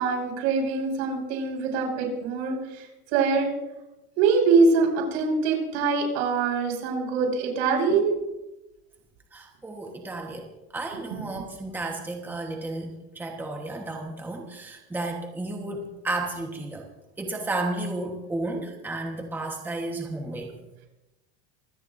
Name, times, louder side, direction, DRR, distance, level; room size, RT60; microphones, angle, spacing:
voice 1, 0.0-3.5 4.2-8.2, right 4 dB, 75° right, 1 dB, 6.0 m, -24 dB
voice 2, 9.3-16.9 17.2-20.5, right 2 dB, 5° right, 2 dB, 1.2 m, -33 dB
24.5 x 17.0 x 2.6 m, 1.0 s
cardioid pair, 165°, 32 cm